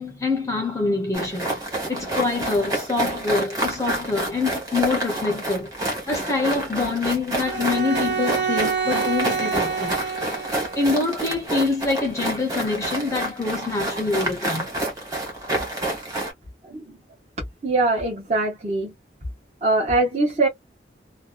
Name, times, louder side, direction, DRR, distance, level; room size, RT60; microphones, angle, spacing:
voice 1, 0.0-1.6 1.9-5.7 6.1-10.0 10.8-14.7, left 3 dB, 15° left, 0.6 m, -25 dB
sound 1, 1.1-16.3, right 1 dB, 20° right, 1.4 m, -28 dB
Bowed string instrument, 7.4-11.0, right 6 dB, 75° right, 1.4 m, -27 dB
voice 2, 16.6-17.0 17.6-18.9 19.6-20.5, right 2 dB, 35° right, 0.9 m, -22 dB
2.6 x 2.2 x 2.3 m
head